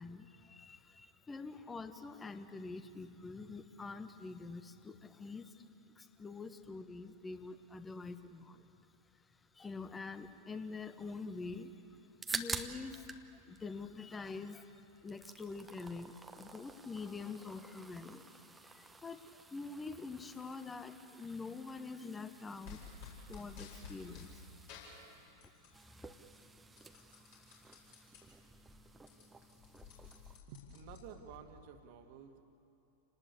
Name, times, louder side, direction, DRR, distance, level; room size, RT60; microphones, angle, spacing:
voice 1, 0.0-5.7 5.9-8.7 9.5-11.8 12.3-24.7 25.4-26.1, left 4 dB, 15° left, 10 dB, 1.3 m, -46 dB
sound 1, 12.0-13.3 13.5-14.6 14.9-30.4, right 3 dB, 10° right, 1.2 m, -49 dB
sound 2, 22.6-24.3 24.7-25.8 26.1-28.2 28.6-28.7 28.9-31.4, left 6 dB, 50° left, 7.0 m, -53 dB
voice 2, 30.3-32.4, right 6 dB, 45° right, 6 dB, 2.1 m, -52 dB
29.0 x 19.5 x 8.5 m, 2.9 s
figure-of-eight pair, 90°, 0 cm